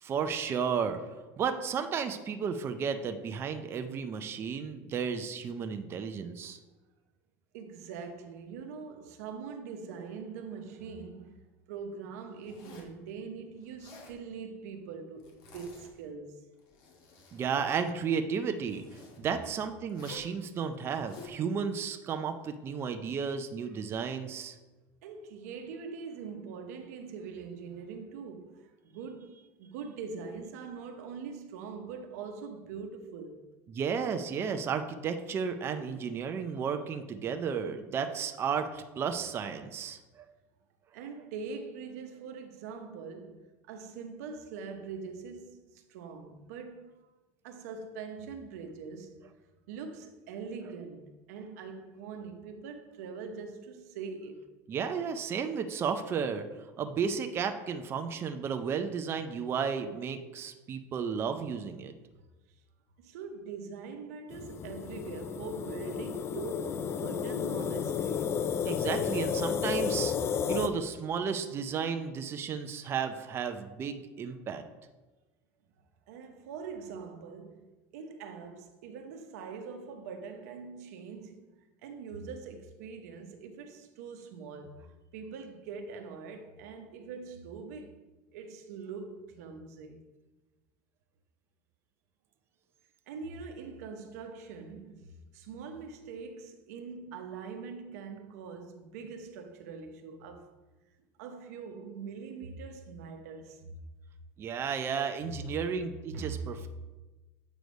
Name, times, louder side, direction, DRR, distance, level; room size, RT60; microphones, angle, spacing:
voice 1, 0.0-6.6 17.3-18.8 19.2-24.6 33.7-40.2 54.7-56.5 56.8-61.9 68.6-70.1 70.5-74.6 104.4-106.7, right 6 dB, 30° right, 0.5 m, -33 dB
voice 2, 7.5-11.4 11.7-16.5 23.7-23.8 25.0-29.3 29.6-33.4 40.9-47.1 47.4-49.2 49.7-54.5 63.0-68.4 76.1-77.7 77.9-81.5 81.8-88.0 88.3-90.0 93.1-100.5 101.2-103.8 106.1-106.4, right 5 dB, 85° right, 0.8 m, -43 dB
Zipper (clothing), 12.4-13.0 13.6-14.2 15.2-15.9 16.5-17.5 18.6-19.2 19.9-20.3 20.8-21.4, left 3 dB, 60° left, 1.6 m, -51 dB
sound 1, 64.3-70.7, left 7 dB, 30° left, 0.3 m, -32 dB
7.8 x 3.2 x 5.2 m
supercardioid pair, 135°, 8 cm